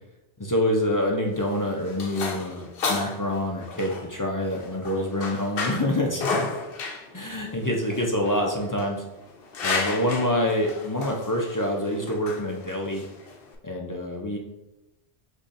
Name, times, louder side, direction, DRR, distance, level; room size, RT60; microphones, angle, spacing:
voice 1, 0.4-6.5 7.1-9.0 9.6-13.1 13.6-14.4, left 1 dB, 30° left, 0 dB, 0.3 m, -26 dB
sound 1, 1.2-13.6, left 4 dB, 60° left, 0.8 m, -33 dB
5.4 x 3.5 x 2.6 m, 0.96 s
omnidirectional pair, 1.1 m